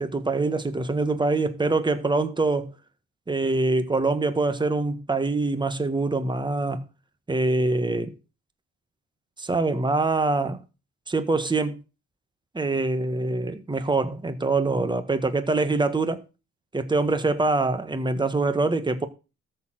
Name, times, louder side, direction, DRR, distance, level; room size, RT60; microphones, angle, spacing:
voice 1, 0.0-2.7 3.3-6.8 7.3-8.1 9.4-10.6 11.1-11.8 12.5-16.2 16.7-19.1, right 3 dB, 15° right, 1.4 m, -24 dB
13.5 x 4.6 x 7.5 m
cardioid pair, 90°, 30 cm